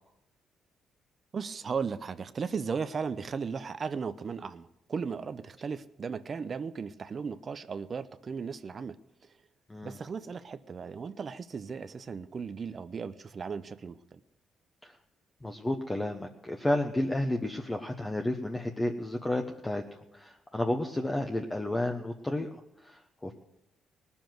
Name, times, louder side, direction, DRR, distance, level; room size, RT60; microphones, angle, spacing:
voice 1, 1.3-9.0 9.8-14.2, right 5 dB, 45° right, 12 dB, 0.6 m, -36 dB
voice 2, 15.4-22.5 22.8-23.3, left 1 dB, 15° left, 3 dB, 1.0 m, -32 dB
18.5 x 7.1 x 7.8 m, 0.89 s
cardioid pair, 90°, 0 cm